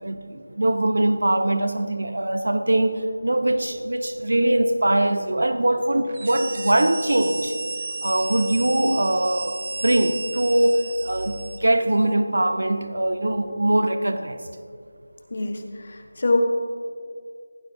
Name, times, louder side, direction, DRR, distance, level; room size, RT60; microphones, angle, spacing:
voice 1, 0.0-7.6 8.0-14.4, right 1 dB, 75° right, 0.8 m, -22 dB
sound 1, 6.1-11.8, right 3 dB, 40° right, 0.4 m, -34 dB
voice 2, 15.3-16.4, left 3 dB, 45° left, 1.3 m, -25 dB
17.0 x 9.8 x 2.7 m
figure-of-eight pair, 170°, 0 cm